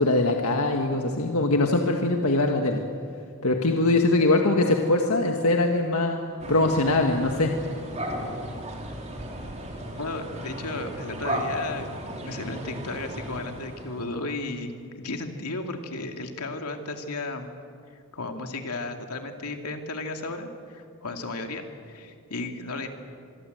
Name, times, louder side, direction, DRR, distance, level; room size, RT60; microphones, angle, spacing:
voice 1, 0.0-2.8 3.4-6.2 6.5-7.5, left 2 dB, 75° left, 3 dB, 1.7 m, -22 dB
sound 1, 6.4-14.2, right 1 dB, 30° right, 3.3 m, -35 dB
voice 2, 10.0-11.9 12.2-17.6 18.1-22.9, left 2 dB, 90° left, 5 dB, 2.5 m, -34 dB
25.5 x 23.0 x 8.0 m, 2.3 s
head